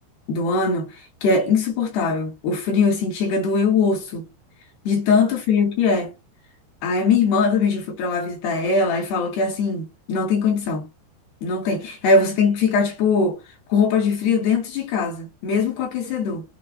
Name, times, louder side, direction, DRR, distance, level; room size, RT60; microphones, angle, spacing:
voice 1, 0.3-4.3 4.9-6.1 6.8-10.9 11.4-13.4 13.7-16.4, left 4 dB, 75° left, 4.3 m, -21 dB
8.4 x 3.6 x 3.5 m
omnidirectional pair, 4.7 m